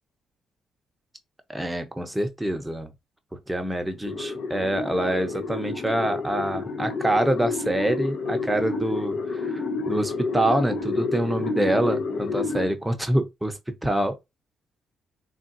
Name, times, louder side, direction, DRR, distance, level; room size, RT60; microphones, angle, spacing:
voice 1, 1.5-2.9 3.5-14.1, right 1 dB, 10° right, 0.7 m, -26 dB
sound 1, 4.1-12.7, left 4 dB, 70° left, 0.6 m, -29 dB
3.6 x 2.4 x 2.6 m
cardioid pair, 90°, 0 cm